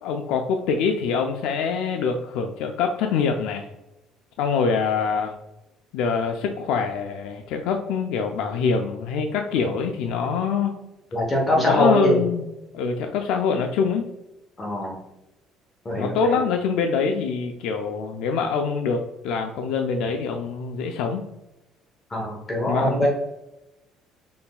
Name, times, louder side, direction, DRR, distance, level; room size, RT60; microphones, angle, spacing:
voice 1, 0.0-3.7 4.4-5.3 5.9-10.8 11.5-12.5 12.7-14.0 16.0-21.2 22.7-23.1, left 5 dB, 80° left, 4 dB, 0.4 m, -24 dB
voice 2, 11.1-12.2 14.6-15.0 15.8-16.4 22.1-23.1, equal, 20° left, -1 dB, 0.8 m, -23 dB
5.8 x 3.4 x 2.2 m, 0.93 s
cardioid pair, 150°, 0 cm